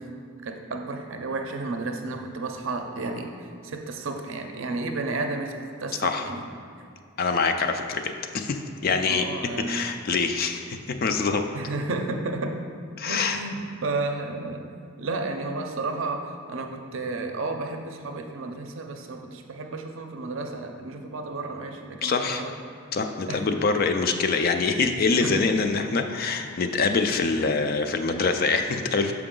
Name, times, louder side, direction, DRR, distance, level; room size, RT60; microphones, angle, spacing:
voice 1, 0.4-3.3 3.6-5.5 5.8-6.5 9.1-10.0 11.5-12.5 13.1-14.6 15.0-22.5 23.3-23.5 25.2-25.4, right 3 dB, 60° right, 4 dB, 0.6 m, -32 dB
voice 2, 7.2-8.6 8.8-9.3 9.7-11.4 13.0-13.4 22.0-22.4 22.9-29.1, left 4 dB, 45° left, 6 dB, 0.3 m, -25 dB
7.0 x 4.7 x 3.7 m, 2.2 s
head